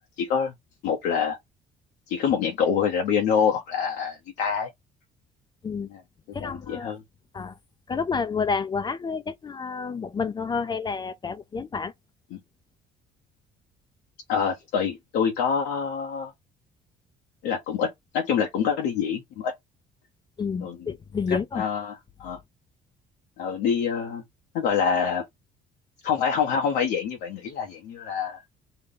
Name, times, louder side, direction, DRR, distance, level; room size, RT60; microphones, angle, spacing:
voice 1, 0.2-0.5 0.8-1.4 2.1-4.7 5.9-6.0 6.4-7.0 12.3-12.4 14.3-16.3 17.4-19.5 20.6-20.9 21.3-22.4 23.4-24.2 24.5-25.2 26.0-28.4, left 7 dB, 85° left, 0.8 m, -26 dB
voice 2, 6.3-6.9 7.3-7.5 7.9-11.9 20.4-21.6, left 5 dB, 25° left, 0.4 m, -29 dB
3.8 x 2.2 x 3.7 m
cardioid pair, 110°, 17 cm